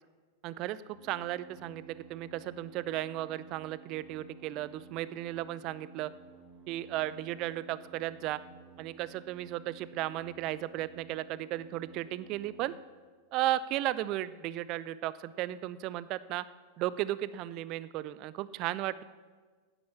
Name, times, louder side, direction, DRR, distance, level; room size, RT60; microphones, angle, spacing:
voice 1, 0.4-6.1 6.7-8.4 8.8-12.7 13.3-16.4 16.8-19.0, right 14 dB, 40° right, 17 dB, 0.4 m, -35 dB
sound 1, 0.9-12.8, right 5 dB, 10° right, 2.9 m, -54 dB
9.3 x 9.1 x 6.9 m, 1.5 s
figure-of-eight pair, 90°, 0 cm